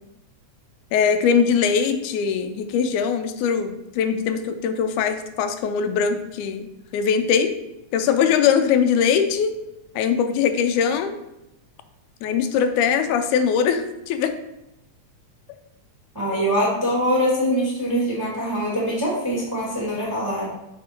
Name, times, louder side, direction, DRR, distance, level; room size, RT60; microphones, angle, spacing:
voice 1, 0.9-7.6 7.9-9.5 10.0-11.2 12.2-14.3 16.3-16.5, left 7 dB, 85° left, 8 dB, 2.0 m, -21 dB
voice 2, 16.1-20.5, equal, 10° right, -4 dB, 1.0 m, -23 dB
6.1 x 5.1 x 4.3 m, 0.90 s
omnidirectional pair, 3.5 m